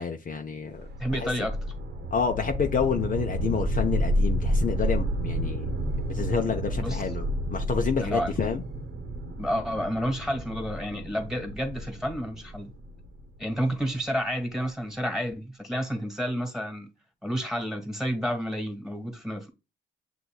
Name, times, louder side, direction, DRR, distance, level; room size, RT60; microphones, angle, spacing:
voice 1, 0.0-0.9 1.2-1.3 2.1-5.7 6.1-8.6, left 6 dB, 45° left, 0.8 m, -29 dB
sound 1, 0.7-13.8, equal, 60° right, 1.1 m, -30 dB
voice 2, 1.0-1.6 6.7-7.0 8.0-8.5 9.4-12.7 13.4-16.9 17.2-19.5, equal, ahead, 1.7 m, -30 dB
8.1 x 3.0 x 2.2 m
cardioid pair, 90°, 20 cm